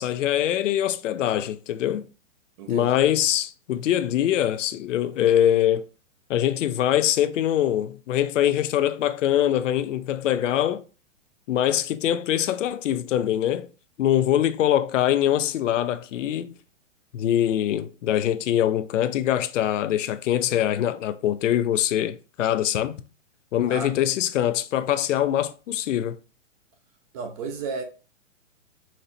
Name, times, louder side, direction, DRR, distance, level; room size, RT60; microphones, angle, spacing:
voice 1, 0.0-2.0 2.7-5.9 6.3-10.8 11.5-13.7 14.0-16.5 17.1-23.0 23.5-26.2, left 11 dB, 75° left, 0.5 m, -23 dB
voice 2, 2.6-2.9 23.7-23.9 27.1-27.8, right 4 dB, 30° right, 0.6 m, -32 dB
4.2 x 3.2 x 2.5 m
hypercardioid pair, 145°, 38 cm